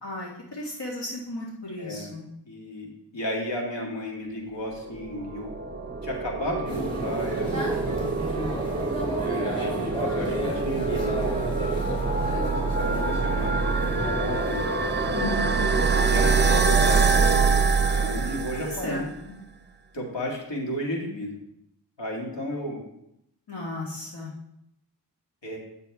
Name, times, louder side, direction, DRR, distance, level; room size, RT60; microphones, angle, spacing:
voice 1, 0.0-2.2 15.1-15.6 18.5-19.1 23.5-24.3, left 2 dB, 70° left, -4 dB, 1.7 m, -34 dB
voice 2, 1.8-2.2 2.5-5.5 6.0-7.6 7.9-8.2 9.2-11.2 12.6-14.7 16.0-19.1 19.9-21.4 22.0-22.8 25.4-25.6, left 1 dB, 85° left, -2 dB, 2.0 m, -33 dB
sound 1, 4.9-19.1, right 4 dB, 25° right, 0.6 m, -25 dB
sound 2, 6.6-17.3, equal, 10° left, 3.3 m, -32 dB
9.0 x 6.6 x 3.5 m, 0.80 s
wide cardioid pair, 65°, 42 cm